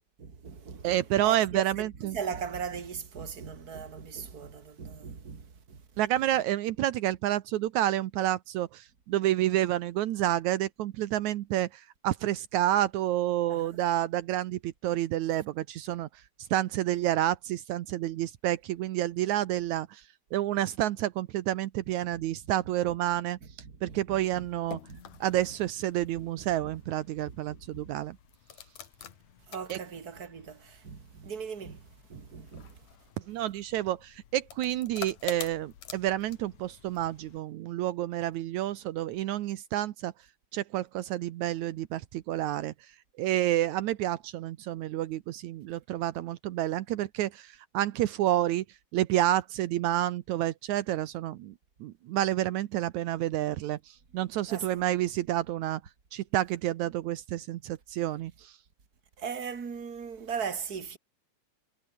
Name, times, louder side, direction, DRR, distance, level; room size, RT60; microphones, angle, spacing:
voice 1, 0.2-5.8 13.5-13.7 22.1-22.2 22.9-23.0 23.6-24.5 24.9-25.0 25.4-25.5 26.1-26.3 26.6-26.7 27.2-27.9 29.5-32.8 54.5-54.8 59.2-61.0, right 6 dB, 30° right, 2.7 m, -39 dB
voice 2, 0.8-2.2 6.0-16.1 16.5-20.0 20.3-23.4 23.8-24.8 25.2-28.2 29.7-29.8 33.3-40.1 40.5-42.7 43.2-48.6 48.9-51.5 51.8-55.8 56.1-58.5, right 13 dB, 80° right, 2.2 m, -29 dB
sound 1, 24.3-37.4, left 9 dB, 70° left, 3.2 m, -48 dB
omnidirectional pair, 3.4 m